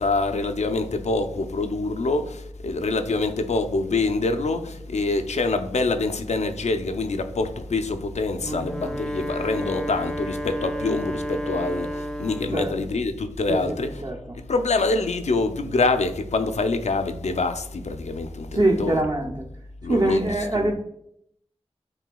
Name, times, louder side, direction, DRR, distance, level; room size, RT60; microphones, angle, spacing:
voice 1, 0.0-14.0 14.5-19.3 19.8-20.7, left 3 dB, 90° left, 0.4 m, -25 dB
voice 2, 8.4-9.0 12.5-12.7 13.5-13.7 14.0-14.2 18.5-19.5 19.9-20.7, right 2 dB, 35° right, 0.6 m, -24 dB
Wind instrument woodwind instrument, 8.5-12.7, equal, 5° left, 0.4 m, -31 dB
7.7 x 2.7 x 2.3 m
wide cardioid pair, 50°, 11 cm